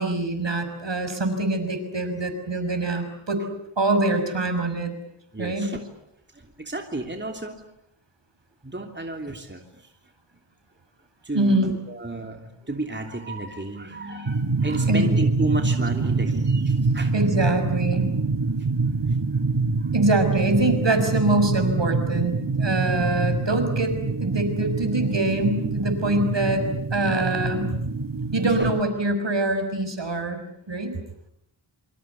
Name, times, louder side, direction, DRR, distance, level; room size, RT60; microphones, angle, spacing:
voice 1, 0.0-3.4 3.8-4.9 5.4-5.7 11.3-11.7 13.9-15.1 17.1-18.1 19.9-26.6 26.9-27.7 28.3-30.4 30.7-30.9, right 2 dB, 60° right, 7 dB, 6.2 m, -24 dB
voice 2, 5.3-5.8 6.3-7.6 8.6-9.9 11.2-17.1 19.1-19.2 19.8-19.9 28.6-28.7, right 2 dB, 20° right, 4 dB, 3.1 m, -32 dB
sound 1, 14.3-28.8, right 3 dB, 45° right, 1.5 m, -25 dB
27.0 x 25.5 x 8.3 m, 0.74 s
wide cardioid pair, 55°, 48 cm